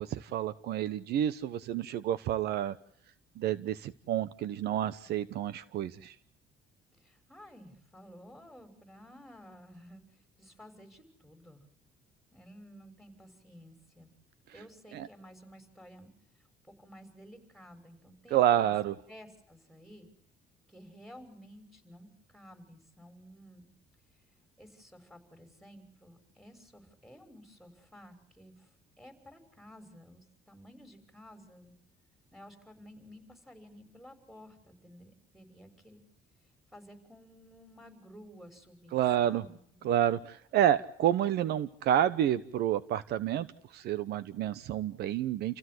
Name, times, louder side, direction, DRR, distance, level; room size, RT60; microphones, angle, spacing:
voice 1, 0.0-2.7 3.4-6.1 14.9-15.1 18.3-18.9 38.9-39.4 39.8-40.2 40.5-43.5 43.7-45.6, right 11 dB, 75° right, 16 dB, 1.1 m, -29 dB
voice 2, 6.9-11.6 12.3-14.1 14.5-16.1 16.3-18.7 19.1-20.1 20.7-23.7 24.6-31.7 32.3-36.1 36.4-40.0, equal, ahead, 7 dB, 6.3 m, -53 dB
29.5 x 16.0 x 8.0 m, 0.69 s
cardioid pair, 110°, 17 cm